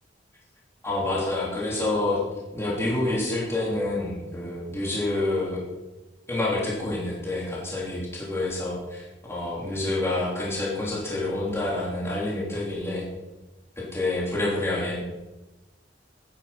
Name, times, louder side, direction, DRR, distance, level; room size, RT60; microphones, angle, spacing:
voice 1, 0.8-2.2 2.5-5.6 6.3-13.1 13.8-15.0, left 2 dB, 15° left, -5 dB, 3.3 m, -28 dB
12.5 x 10.0 x 5.8 m, 1.1 s
head